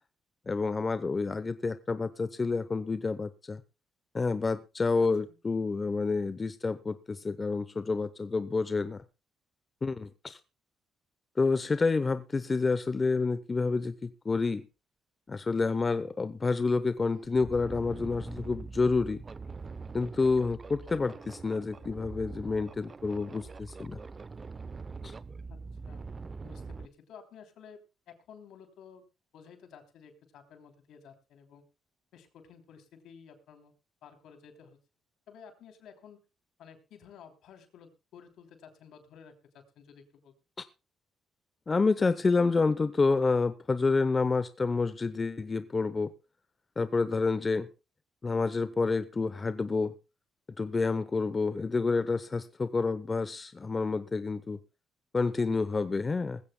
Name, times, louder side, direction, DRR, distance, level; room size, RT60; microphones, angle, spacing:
voice 1, 0.5-3.6 4.1-9.0 9.8-10.4 11.4-14.7 15.3-19.2 19.9-24.0 25.0-25.1 41.7-46.1 46.8-47.7 48.2-49.9 50.6-54.6 55.1-56.4, left 4 dB, 30° left, 0.7 m, -29 dB
voice 2, 5.0-5.4 25.5-26.1 26.4-29.0 29.3-31.6 32.1-33.7 34.0-34.8 35.3-36.2 36.6-40.3, left 7 dB, 80° left, 3.1 m, -53 dB
sound 1, 17.1-26.9, right 4 dB, 35° right, 0.7 m, -43 dB
20.0 x 15.5 x 2.2 m
cardioid pair, 90°, 0 cm